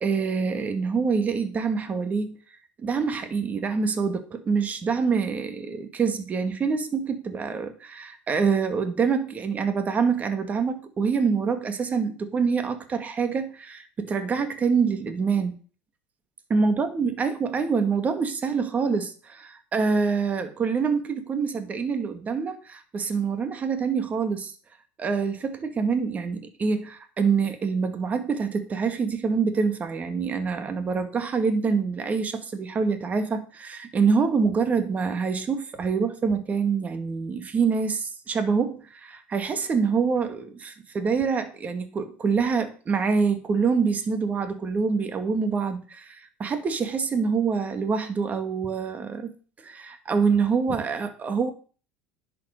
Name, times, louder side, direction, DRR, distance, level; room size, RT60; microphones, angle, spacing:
voice 1, 0.0-2.4 2.8-15.6 16.5-24.5 25.0-49.3 49.6-51.5, right 5 dB, 30° right, 2.1 m, -26 dB
10.5 x 7.1 x 6.5 m
supercardioid pair, 95°, 5 cm